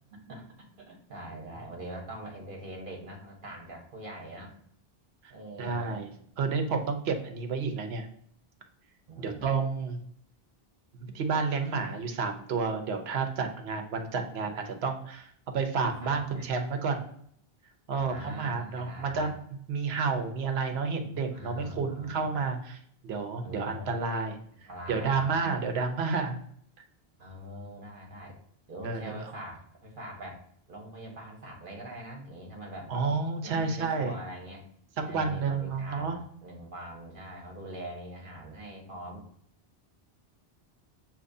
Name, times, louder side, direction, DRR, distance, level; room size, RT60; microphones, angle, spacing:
voice 1, 0.1-0.4 0.8-4.5 5.3-6.0 9.1-9.5 16.0-16.5 17.9-19.3 21.3-22.3 23.4-23.9 24.6-25.3 27.2-28.4 28.7-32.9 33.4-34.6 35.0-39.2, equal, 55° right, 0 dB, 1.3 m, -43 dB
voice 2, 5.6-6.1 6.4-8.1 9.2-10.0 11.0-17.0 17.9-19.3 19.7-24.4 24.9-26.4 28.8-29.3 32.9-34.1 35.0-36.2, right 4 dB, 85° right, 5 dB, 1.0 m, -30 dB
6.4 x 2.9 x 2.6 m, 0.65 s
omnidirectional pair, 1.0 m